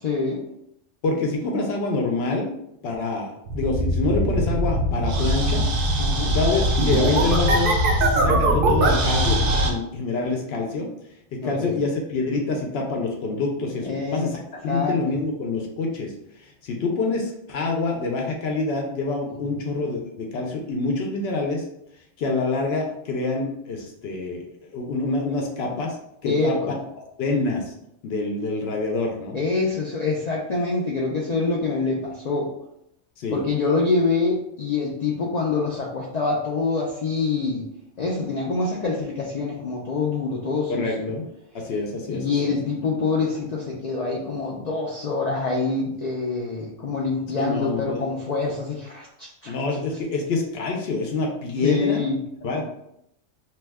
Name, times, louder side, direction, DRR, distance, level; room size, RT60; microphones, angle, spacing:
voice 1, 0.0-0.4 6.0-6.4 11.4-11.8 13.8-14.3 14.7-15.0 19.3-19.4 26.2-26.7 29.3-32.5 33.3-37.7 38.0-41.1 42.1-49.5 51.6-52.2 52.6-52.7, left 4 dB, 80° left, -3 dB, 0.3 m, -25 dB
voice 2, 1.0-2.5 2.8-5.7 6.3-10.9 11.3-16.1 16.4-21.7 22.2-24.4 24.7-26.0 26.2-26.8 27.2-27.7 28.0-29.4 33.2-33.4 40.7-41.3 41.5-42.6 47.4-48.1 49.5-52.1 52.4-52.6, left 3 dB, 65° left, 1 dB, 0.7 m, -26 dB
sound 1, 3.5-9.7, right 1 dB, 60° right, 0.6 m, -21 dB
2.7 x 2.2 x 3.3 m, 0.77 s
omnidirectional pair, 1.3 m